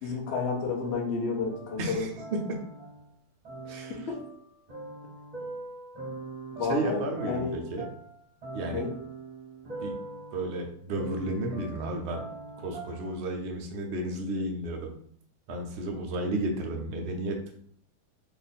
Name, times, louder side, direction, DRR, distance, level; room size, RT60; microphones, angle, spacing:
voice 1, 0.0-2.1 4.1-4.2 6.6-7.6 8.7-8.9, left 4 dB, 60° left, -1 dB, 0.7 m, -30 dB
sound 1, 0.8-3.1 3.4-13.2, right 3 dB, 35° right, 0.6 m, -42 dB
voice 2, 1.8-2.6 3.6-4.1 6.7-7.9 8.5-8.8 9.8-10.0 10.3-12.2 12.6-14.9 15.5-17.6, right 1 dB, 80° right, 1 dB, 0.5 m, -33 dB
2.9 x 2.3 x 4.1 m, 0.62 s
omnidirectional pair, 1.8 m